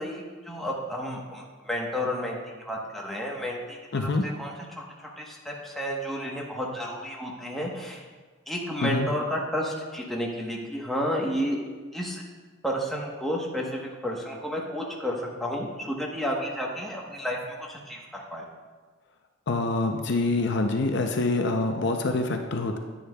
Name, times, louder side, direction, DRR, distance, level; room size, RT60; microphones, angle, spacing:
voice 1, 0.0-2.4 2.7-8.0 8.5-11.6 11.9-12.2 12.6-17.4 17.7-18.0 18.3-18.4, equal, ahead, -3 dB, 1.1 m, -31 dB
voice 2, 3.9-4.2 8.8-9.1 19.5-22.8, left 3 dB, 55° left, 4 dB, 0.6 m, -25 dB
10.0 x 9.4 x 2.3 m, 1.4 s
head